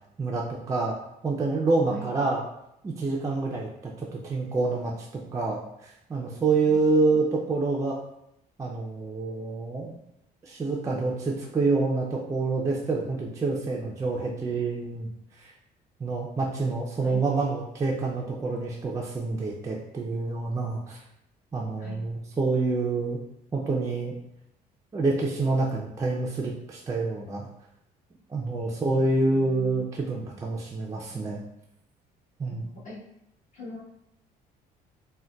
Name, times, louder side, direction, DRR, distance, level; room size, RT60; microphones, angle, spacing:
voice 1, 0.2-0.9 1.2-2.4 2.8-5.1 5.3-8.0 8.6-10.0 10.4-15.1 15.4-15.5 16.0-21.0 21.5-23.2 23.5-24.1 24.9-27.5 28.3-31.4 32.4-32.7, right 3 dB, 20° right, -2 dB, 0.3 m, -27 dB
voice 2, 6.5-7.4 17.0-17.2 21.8-22.0 28.6-29.9 32.5-33.0 33.5-33.8, left 3 dB, 45° left, -5 dB, 1.1 m, -43 dB
3.7 x 2.1 x 2.2 m, 0.80 s
cardioid pair, 110°, 17 cm